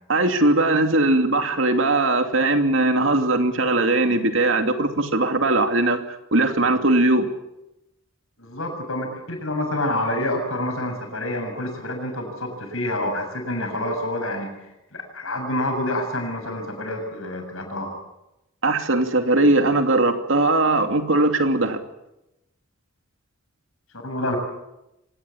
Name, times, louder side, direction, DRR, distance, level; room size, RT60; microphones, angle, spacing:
voice 1, 0.1-7.3 18.6-21.8, right 2 dB, 65° right, 6 dB, 2.7 m, -20 dB
voice 2, 8.4-14.5 14.9-17.9 24.0-24.4, left 1 dB, 70° left, 4 dB, 7.5 m, -27 dB
25.5 x 19.0 x 8.6 m, 0.92 s
head